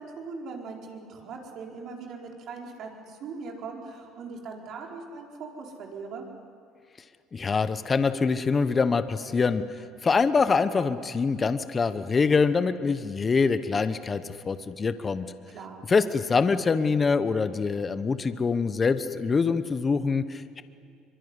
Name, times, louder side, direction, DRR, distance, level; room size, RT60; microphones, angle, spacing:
voice 1, 0.0-6.2 15.5-15.8, right 4 dB, 55° right, 1 dB, 4.6 m, -40 dB
voice 2, 7.3-9.6 10.0-15.3 15.9-20.6, left 4 dB, 25° left, 12 dB, 1.0 m, -24 dB
24.5 x 23.0 x 9.8 m, 2.2 s
cardioid pair, 115°, 0 cm